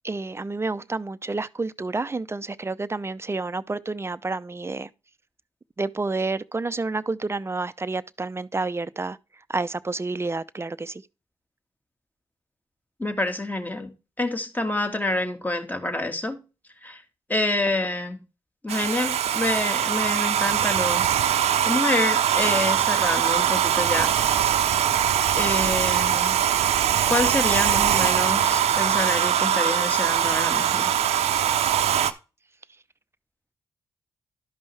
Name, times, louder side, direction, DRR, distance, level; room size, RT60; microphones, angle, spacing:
voice 1, 0.0-4.9 5.8-9.2 9.5-11.0, right 3 dB, 25° right, 0.6 m, -29 dB
voice 2, 13.0-16.4 16.8-17.0 17.3-18.2 18.6-21.1 21.5-24.1 25.4-26.4 27.1-30.9, left 2 dB, 15° left, 1.9 m, -27 dB
Domestic sounds home sounds, 18.7-32.1, right 10 dB, 80° right, 0.6 m, -22 dB
12.0 x 5.2 x 3.3 m
supercardioid pair, 45°, 11 cm